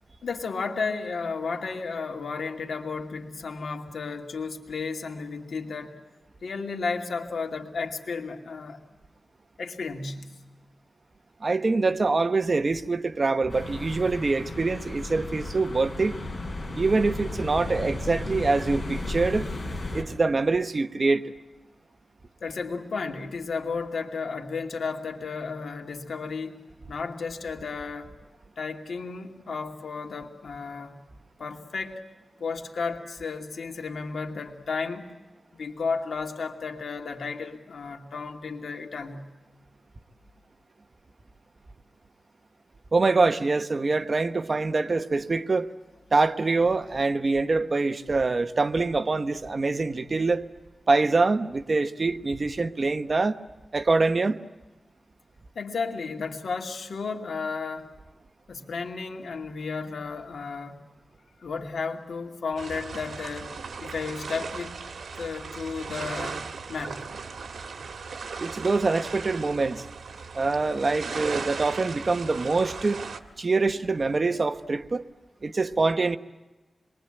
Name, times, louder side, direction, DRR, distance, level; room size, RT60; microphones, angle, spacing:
voice 1, 0.2-6.0 6.4-8.8 9.6-10.4 22.4-26.6 26.9-28.1 28.6-31.0 31.4-32.0 32.4-35.1 35.5-39.3 55.5-57.9 58.5-60.8 61.4-64.8 65.2-67.1, left 4 dB, 85° left, 2.6 m, -33 dB
voice 2, 11.4-16.2 16.7-19.5 19.9-21.3 42.9-45.7 46.1-50.4 50.9-53.4 53.7-54.4 68.4-69.8 70.3-73.0 73.4-75.1 75.4-76.2, right 3 dB, 45° right, 1.0 m, -24 dB
sound 1, 13.5-20.0, left 2 dB, 35° left, 6.1 m, -34 dB
sound 2, 62.6-73.2, right 5 dB, 85° right, 1.8 m, -37 dB
27.5 x 22.5 x 9.0 m
wide cardioid pair, 95°, 0 cm